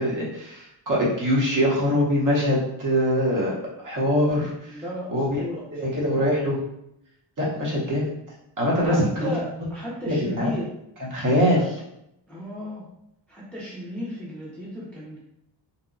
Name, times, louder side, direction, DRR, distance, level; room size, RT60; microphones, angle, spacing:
voice 1, 0.0-3.5 3.8-4.8 5.1-5.4 5.7-6.6 7.4-8.1 8.6-9.3 10.0-10.5 11.0-11.6, equal, 45° right, -4 dB, 0.8 m, -23 dB
voice 2, 4.7-5.6 5.9-6.2 8.8-10.7 11.6-11.7 12.3-12.9 13.3-15.2, left 1 dB, 5° left, -6 dB, 0.4 m, -34 dB
2.8 x 2.1 x 2.4 m, 0.80 s
wide cardioid pair, 170°, 44 cm